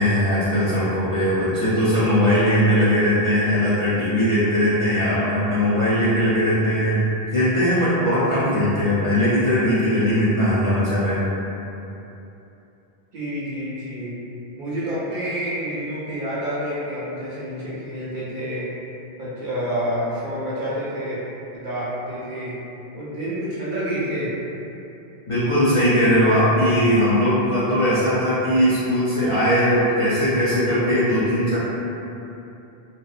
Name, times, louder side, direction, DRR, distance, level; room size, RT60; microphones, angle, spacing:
voice 1, 0.0-7.0 7.3-11.3 25.3-31.6, equal, 40° left, -13 dB, 0.5 m, -19 dB
voice 2, 13.1-14.1 14.6-18.7 19.2-21.2 21.5-22.6 22.9-24.3, equal, 60° right, -8 dB, 0.6 m, -28 dB
2.7 x 2.1 x 2.4 m, 2.9 s
omnidirectional pair, 1.1 m